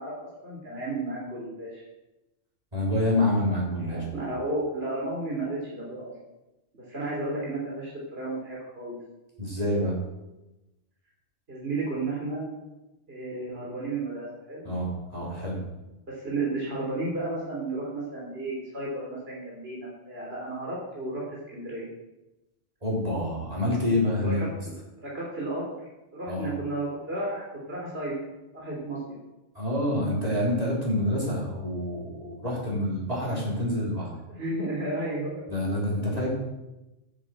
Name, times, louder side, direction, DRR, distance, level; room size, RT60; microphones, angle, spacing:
voice 1, 0.0-1.8 3.8-6.1 6.7-9.0 11.5-12.5 13.1-14.6 16.1-21.9 24.2-25.6 26.1-28.2 28.5-29.2 34.3-35.4, right 2 dB, 55° right, -4 dB, 3.3 m, -33 dB
voice 2, 2.7-4.2 9.4-10.0 14.6-15.6 22.8-24.4 26.3-26.5 29.5-34.1 35.5-36.3, left 1 dB, 35° right, -4 dB, 3.9 m, -27 dB
10.5 x 7.8 x 7.7 m, 0.99 s
omnidirectional pair, 1.2 m